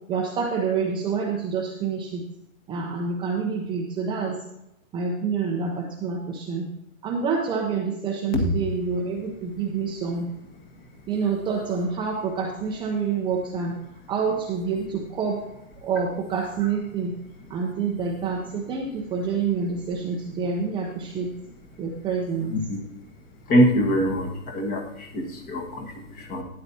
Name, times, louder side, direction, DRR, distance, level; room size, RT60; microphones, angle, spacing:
voice 1, 0.1-2.2 2.7-4.4 4.9-6.7 7.0-10.3 11.1-13.7 14.1-15.4 15.8-17.1 17.5-21.3 21.8-22.5, right 5 dB, 10° right, -1 dB, 0.7 m, -27 dB
voice 2, 22.5-22.8 23.5-26.4, equal, 20° left, 2 dB, 1.5 m, -24 dB
12.5 x 9.6 x 2.8 m, 0.90 s
hypercardioid pair, 135°, 41 cm